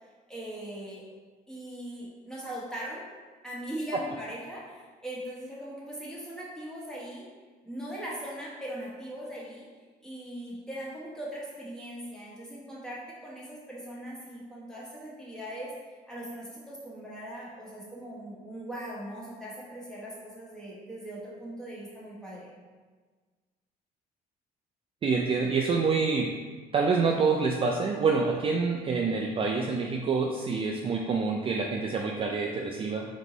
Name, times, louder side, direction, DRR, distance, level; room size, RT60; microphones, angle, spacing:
voice 1, 0.3-1.0 1.5-3.0 3.4-7.2 7.6-9.6 10.0-15.7 16.1-22.5, right 1 dB, 5° left, -6 dB, 1.2 m, -40 dB
voice 2, 25.0-26.4 26.7-33.1, right 4 dB, 35° right, 0 dB, 0.4 m, -27 dB
3.6 x 3.0 x 3.8 m, 1.4 s
cardioid pair, 110°, 17 cm